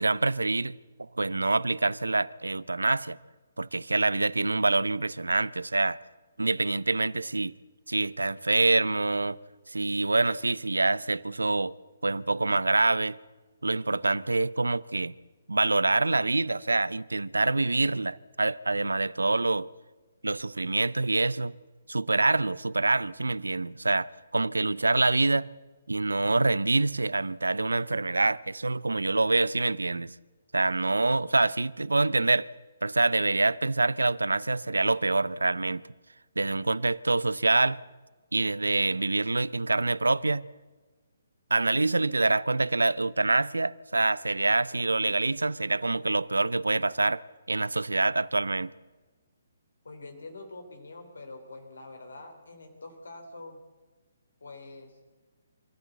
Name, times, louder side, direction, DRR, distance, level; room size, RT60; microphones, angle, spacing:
voice 1, 0.0-3.2 3.6-6.0 6.4-7.5 7.9-9.4 9.7-11.7 12.0-13.2 13.6-15.1 15.5-19.7 20.2-21.6 21.9-25.5 25.9-30.1 30.5-32.5 32.8-35.8 36.4-37.8 38.3-40.5 41.5-47.2 47.5-48.7, right 2 dB, 85° right, 0.6 m, -26 dB
voice 2, 49.8-53.6 54.4-55.0, left 2 dB, 75° left, 3.7 m, -45 dB
25.5 x 14.5 x 8.2 m
figure-of-eight pair, 135°, 0 cm